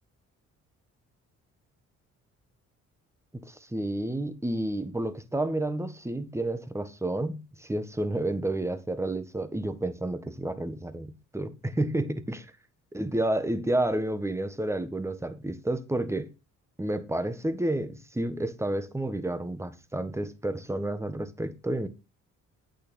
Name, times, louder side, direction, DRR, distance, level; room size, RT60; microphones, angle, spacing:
voice 1, 3.3-12.5 12.9-16.3 16.8-21.9, right 1 dB, 10° right, 1.3 m, -30 dB
8.7 x 6.6 x 5.3 m
cardioid pair, 90°, 30 cm